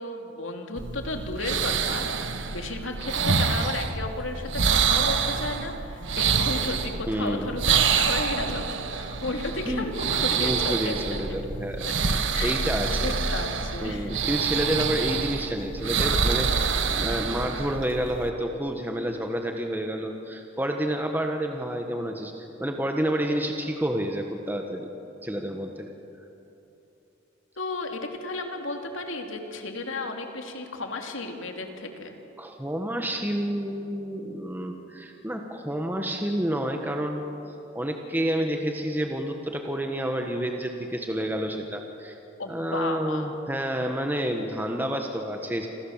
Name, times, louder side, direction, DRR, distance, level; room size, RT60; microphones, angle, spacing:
voice 1, 0.0-8.6 8.9-11.2 11.8-11.9 12.3-12.8 13.0-14.3 27.6-32.1 42.4-43.3, left 2 dB, 75° left, 4 dB, 2.9 m, -33 dB
sound 1, 0.8-18.3, right 5 dB, 65° right, 1.5 m, -27 dB
voice 2, 7.1-7.6 9.7-9.8 10.3-13.1 13.8-24.9 25.2-25.9 32.4-37.2 37.7-42.2 42.5-45.7, equal, 10° right, 3 dB, 1.4 m, -29 dB
29.0 x 26.5 x 7.4 m, 3.0 s
head